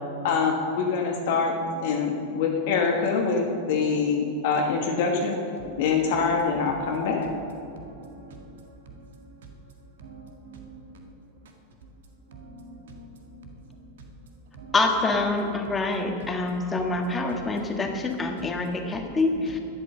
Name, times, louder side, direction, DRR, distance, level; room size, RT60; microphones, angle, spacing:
voice 1, 0.2-1.5 1.8-5.4 5.8-7.3, left 5 dB, 50° left, 0 dB, 1.3 m, -24 dB
voice 2, 7.7-9.4 10.0-11.0 12.3-13.8 14.5-14.7 15.5-17.9 18.2-18.3 18.9-19.6, right 3 dB, 60° right, 3 dB, 1.9 m, -46 dB
voice 3, 14.7-19.6, left 3 dB, 15° left, 3 dB, 1.6 m, -26 dB
12.5 x 8.7 x 6.7 m, 2.5 s
figure-of-eight pair, 90°, 0 cm